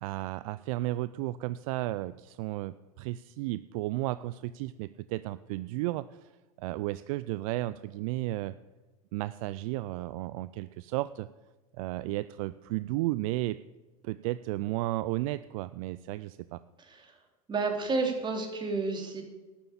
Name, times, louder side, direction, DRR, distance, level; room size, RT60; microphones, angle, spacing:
voice 1, 0.0-6.3 6.6-8.5 9.1-11.3 11.8-13.6 14.0-16.6, right 17 dB, 60° right, 15 dB, 0.4 m, -33 dB
voice 2, 16.8-17.2 17.5-19.2, right 3 dB, 25° right, 3 dB, 2.8 m, -31 dB
12.5 x 7.2 x 8.4 m, 1.2 s
hypercardioid pair, 100°, 20 cm